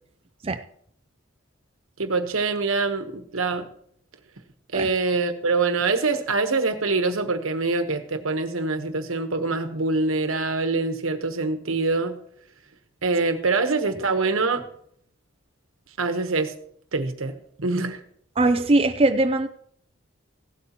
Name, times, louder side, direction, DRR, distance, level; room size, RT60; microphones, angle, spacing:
voice 1, 2.0-3.6 4.7-12.2 13.0-14.6 16.0-16.5 16.9-17.3 17.6-18.0, right 3 dB, 90° right, 7 dB, 1.2 m, -24 dB
voice 2, 18.4-19.5, right 2 dB, 25° right, 8 dB, 0.4 m, -20 dB
16.0 x 12.0 x 2.9 m, 0.66 s
head